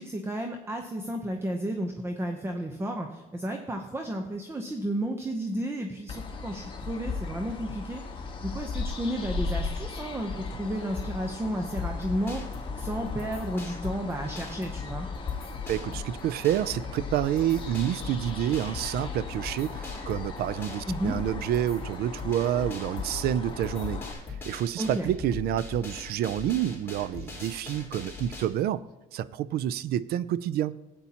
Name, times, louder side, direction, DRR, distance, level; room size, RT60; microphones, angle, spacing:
voice 1, 0.0-15.1 20.9-21.2 24.8-25.1, right 1 dB, 15° right, 0.7 m, -32 dB
sound 1, 6.1-24.1, left 4 dB, 30° left, 1.3 m, -37 dB
sound 2, 11.8-28.4, left 5 dB, 15° left, 3.5 m, -40 dB
voice 2, 15.7-24.0 24.5-28.8 29.1-30.8, right 11 dB, 65° right, 0.4 m, -28 dB
13.5 x 8.6 x 2.9 m
cardioid pair, 110°, 17 cm